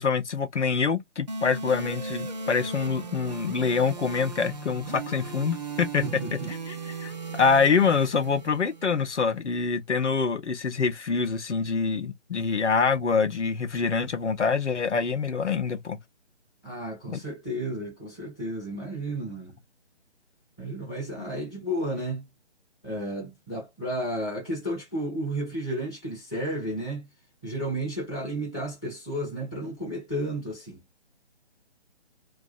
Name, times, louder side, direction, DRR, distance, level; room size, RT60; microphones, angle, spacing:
voice 1, 0.0-6.0 6.3-16.0 17.1-17.2 21.2-21.3, left 5 dB, 80° left, 0.6 m, -25 dB
sound 1, 1.3-9.3, right 3 dB, 40° right, 0.5 m, -37 dB
voice 2, 6.0-6.5 16.6-19.5 20.6-22.2 22.8-27.1 27.4-30.8, right 1 dB, 5° left, 0.6 m, -32 dB
2.6 x 2.2 x 2.3 m
figure-of-eight pair, 145°, 34 cm